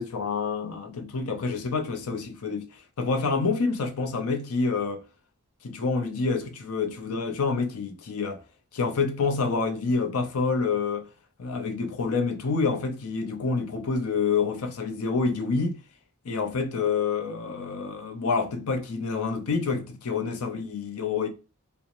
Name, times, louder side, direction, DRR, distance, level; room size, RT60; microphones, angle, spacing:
voice 1, 0.0-2.7 3.0-5.0 5.6-8.4 8.7-11.0 11.4-15.8 16.2-21.3, left 4 dB, 85° left, 0.5 m, -27 dB
2.4 x 2.1 x 2.8 m
head